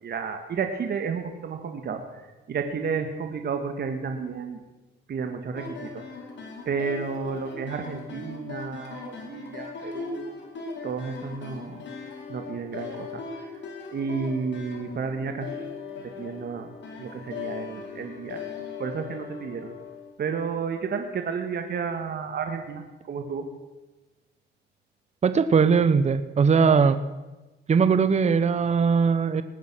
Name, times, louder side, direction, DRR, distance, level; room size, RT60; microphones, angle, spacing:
voice 1, 0.0-4.6 5.1-6.0 6.6-10.4 10.8-11.9 12.3-13.5 13.9-15.7 16.0-16.7 17.0-18.4 18.8-19.7 20.2-23.5, right 5 dB, 55° right, 6 dB, 1.6 m, -32 dB
sound 1, 5.5-20.1, left 5 dB, 65° left, 4.4 m, -39 dB
voice 2, 25.2-27.0 27.7-29.4, right 5 dB, 35° right, 12 dB, 0.8 m, -20 dB
19.5 x 9.4 x 6.1 m, 1.1 s
cardioid pair, 90°, 20 cm